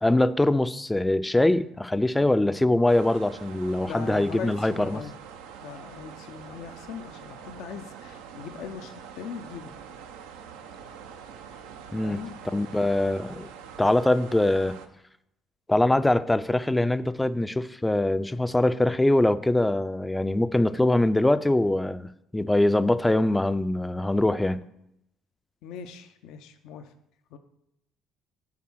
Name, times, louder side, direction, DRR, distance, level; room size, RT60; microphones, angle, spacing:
voice 1, 0.0-5.0 11.9-12.2 12.5-13.5 13.8-14.8 15.7-24.6, left 1 dB, 10° left, 14 dB, 0.4 m, -23 dB
sound 1, 2.9-14.9, right 7 dB, 85° right, 0.5 m, -44 dB
voice 2, 3.8-5.1 5.6-9.7 12.0-12.3 25.6-26.9 27.3-27.4, left 7 dB, 70° left, 8 dB, 0.5 m, -40 dB
7.4 x 3.5 x 6.1 m, 0.81 s
hypercardioid pair, 60°, 0 cm